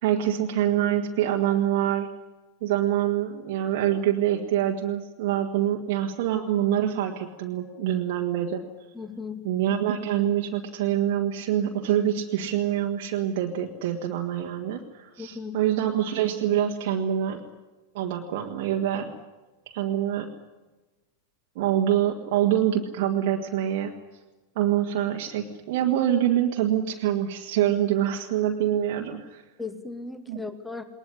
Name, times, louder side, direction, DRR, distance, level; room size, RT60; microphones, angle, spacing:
voice 1, 0.0-2.1 2.6-8.6 9.4-17.5 17.9-19.2 19.7-20.3 21.5-23.9 24.5-29.4 30.3-30.4, right 11 dB, 50° right, 2 dB, 1.8 m, -25 dB
voice 2, 8.9-9.5 15.2-15.6 29.6-30.8, left 4 dB, 5° left, 10 dB, 2.3 m, -36 dB
21.0 x 20.0 x 9.9 m, 1.1 s
figure-of-eight pair, 90°, 0 cm